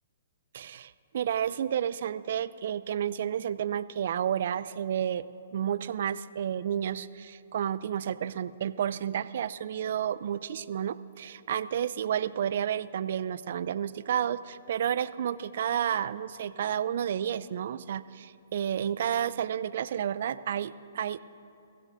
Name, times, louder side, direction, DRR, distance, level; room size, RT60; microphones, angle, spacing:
voice 1, 0.5-5.2 5.5-21.2, right 9 dB, 60° right, 16 dB, 0.4 m, -31 dB
21.0 x 15.5 x 2.6 m, 2.6 s
hypercardioid pair, 135°, 0 cm